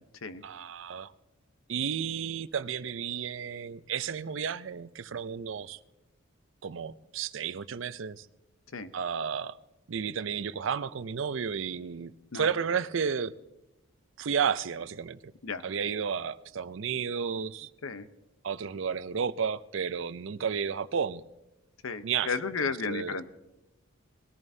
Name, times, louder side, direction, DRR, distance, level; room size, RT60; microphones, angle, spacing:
voice 1, 0.4-1.1 1.7-5.8 6.6-8.2 8.9-9.6 9.9-13.3 14.2-15.2 15.6-17.7 18.4-21.2 22.0-22.3 22.9-23.1, right 7 dB, 65° right, 0.5 m, -32 dB
voice 2, 21.8-23.3, left 5 dB, 80° left, 0.7 m, -33 dB
21.0 x 14.0 x 2.7 m
head